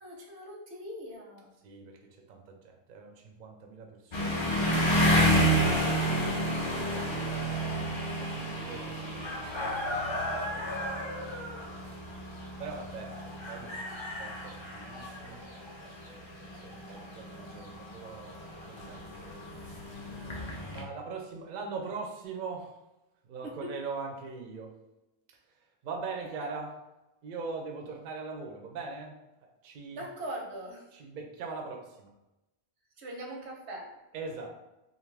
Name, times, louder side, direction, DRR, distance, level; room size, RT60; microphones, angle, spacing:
voice 1, 0.0-1.5 23.4-23.7 29.9-30.8 33.0-34.0, right 1 dB, 90° right, -1 dB, 1.0 m, -41 dB
voice 2, 1.6-4.4 6.2-7.2 7.6-11.1 12.6-15.4 16.0-19.8 20.7-22.8 23.2-24.8 25.3-25.4 25.8-26.7 27.2-29.2 29.6-30.1 30.9-32.1 34.1-34.5, right 4 dB, 60° right, 2 dB, 0.6 m, -42 dB
sound 1, 4.1-20.8, equal, 35° left, 0.4 m, -31 dB
2.6 x 2.5 x 3.2 m, 0.95 s
omnidirectional pair, 1.1 m